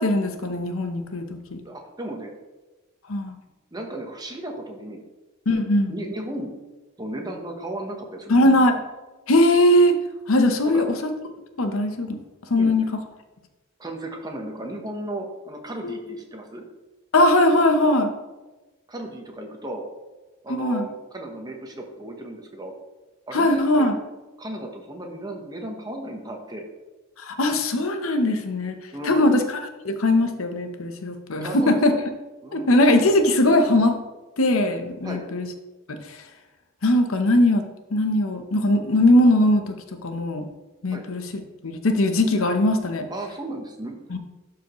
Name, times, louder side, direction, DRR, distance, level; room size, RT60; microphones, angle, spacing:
voice 1, 0.0-1.6 3.1-3.3 5.5-5.9 8.3-8.8 9.3-10.0 10.3-11.0 11.6-12.2 12.5-12.9 15.8-16.0 17.1-18.1 20.5-20.9 23.3-24.0 27.2-28.8 29.0-29.6 29.8-31.9 32.5-33.9 34.4-35.5 35.9-36.2 36.8-37.6 37.9-39.8 40.0-40.5 40.8-41.2 41.6-43.1 44.1-44.2, left 1 dB, 85° left, 7 dB, 0.8 m, -20 dB
voice 2, 1.6-2.3 3.7-5.0 5.9-6.5 7.0-8.5 10.6-10.8 12.6-12.8 13.8-16.6 18.9-19.8 20.4-22.7 23.3-23.9 24.4-26.6 28.9-29.4 31.4-32.0 32.4-32.7 35.0-35.2 40.9-41.1 43.1-44.2, right 1 dB, 20° right, 2 dB, 1.0 m, -35 dB
11.5 x 4.9 x 3.1 m, 1.1 s
head